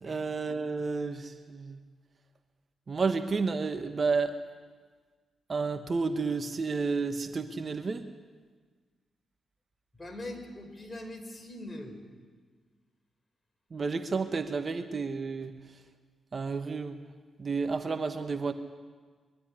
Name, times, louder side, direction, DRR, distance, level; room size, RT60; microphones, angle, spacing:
voice 1, 0.0-1.8 2.9-4.3 5.5-8.0 13.7-15.6 16.3-17.0 17.4-18.5, right 4 dB, 45° right, 8 dB, 1.2 m, -31 dB
voice 2, 10.0-11.9, left 1 dB, 20° left, 5 dB, 4.6 m, -42 dB
22.0 x 12.5 x 10.0 m, 1.5 s
supercardioid pair, 55°, 0 cm